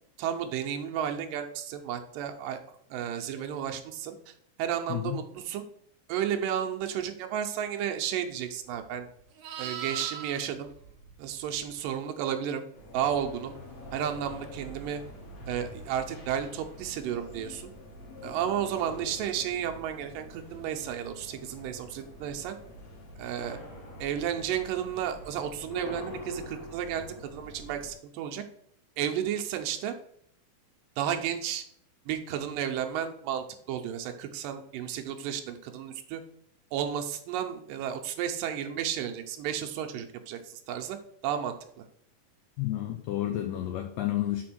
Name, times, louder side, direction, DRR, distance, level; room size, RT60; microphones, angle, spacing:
voice 1, 0.2-2.6 2.9-4.3 4.6-5.6 6.1-9.1 9.6-10.7 11.2-12.7 12.9-13.5 13.9-15.0 15.5-17.7 18.2-22.6 23.2-23.6 24.0-28.4 29.0-29.9 31.0-31.6 32.1-36.2 36.7-41.0 41.2-41.9, right 9 dB, 85° right, 5 dB, 2.3 m, -32 dB
Livestock farm animals working animals, 8.7-12.0 16.3-16.6, right 8 dB, 65° right, 1.9 m, -42 dB
sound 1, 12.7-27.9, left 1 dB, 55° left, 2.6 m, -45 dB
voice 2, 42.6-44.4, left 14 dB, 85° left, 4 dB, 1.6 m, -30 dB
6.0 x 4.2 x 6.0 m, 0.68 s
omnidirectional pair, 3.9 m